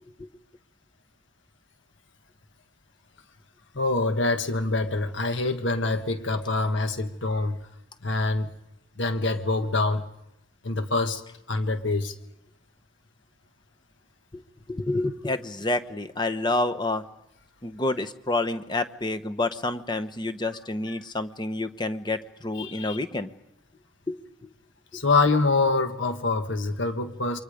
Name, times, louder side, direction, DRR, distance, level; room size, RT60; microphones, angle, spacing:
voice 1, 3.7-7.6 8.0-8.5 9.0-10.0 10.6-11.2 11.5-12.1 22.6-23.0 24.9-27.4, left 3 dB, 65° left, 8 dB, 1.6 m, -25 dB
voice 2, 14.7-17.0 17.6-23.3 24.1-24.5 24.9-25.0, left 2 dB, 20° left, 8 dB, 1.0 m, -29 dB
28.5 x 24.0 x 5.2 m, 0.84 s
head